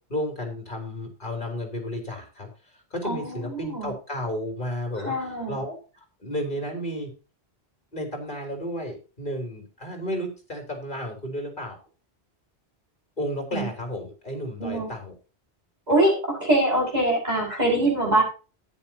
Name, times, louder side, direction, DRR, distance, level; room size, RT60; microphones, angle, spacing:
voice 1, 0.1-7.1 7.9-11.8 13.2-15.1, equal, 50° left, 3 dB, 3.7 m, -33 dB
voice 2, 3.0-3.9 5.0-5.6 13.5-13.7 14.6-14.9 15.9-18.2, right 1 dB, 40° right, -2 dB, 6.1 m, -23 dB
13.5 x 10.0 x 2.8 m, 0.33 s
omnidirectional pair, 1.1 m